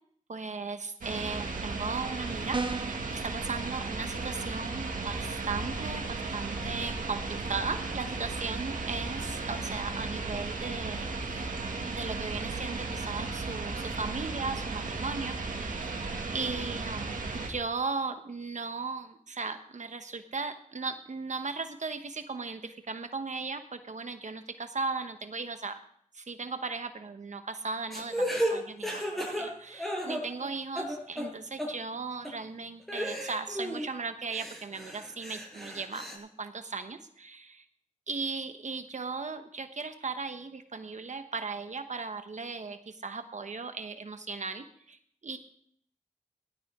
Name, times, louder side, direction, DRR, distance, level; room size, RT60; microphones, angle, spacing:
voice 1, 0.3-11.5 11.8-15.9 16.3-25.8 26.1-37.7 38.1-45.4, right 4 dB, 65° right, 8 dB, 1.1 m, -37 dB
sound 1, 1.0-17.5, right 3 dB, 85° right, 2.1 m, -35 dB
sound 2, 2.5-3.1, right 3 dB, 40° right, 1.0 m, -32 dB
sound 3, 27.9-30.5 30.7-31.3 31.6-31.7 32.2-32.3 32.9-33.9 34.3-36.2, equal, ahead, 6.0 m, -33 dB
17.0 x 12.5 x 3.7 m, 0.64 s
cardioid pair, 50°, 13 cm